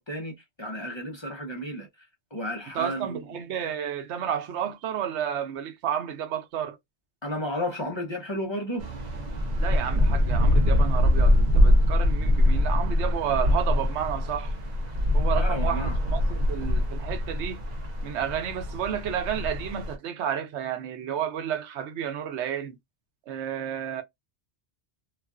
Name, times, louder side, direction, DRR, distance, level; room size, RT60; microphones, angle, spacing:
voice 1, 0.0-2.1 2.3-3.4 7.2-8.9 15.3-16.0, equal, 35° left, 0.5 m, -33 dB
voice 2, 2.7-6.8 9.6-14.5 15.1-17.6 18.0-22.8 23.3-24.0, right 9 dB, 90° right, 0.9 m, -31 dB
sound 1, 8.8-19.9, left 1 dB, 55° right, 0.5 m, -23 dB
2.4 x 2.3 x 2.3 m
omnidirectional pair, 1.1 m